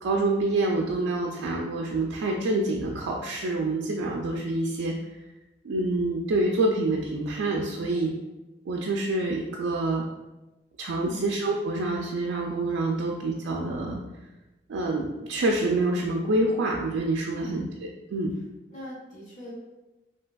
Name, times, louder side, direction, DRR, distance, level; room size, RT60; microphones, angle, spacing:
voice 1, 0.0-4.9 5.6-8.1 8.7-10.0 10.8-14.0 14.7-17.7 18.1-18.3, right 2 dB, 85° right, -1 dB, 0.3 m, -27 dB
voice 2, 7.8-8.1 11.0-11.2 17.3-17.6 18.7-19.5, left 1 dB, 45° left, -7 dB, 0.9 m, -41 dB
3.2 x 2.7 x 2.2 m, 1.1 s
head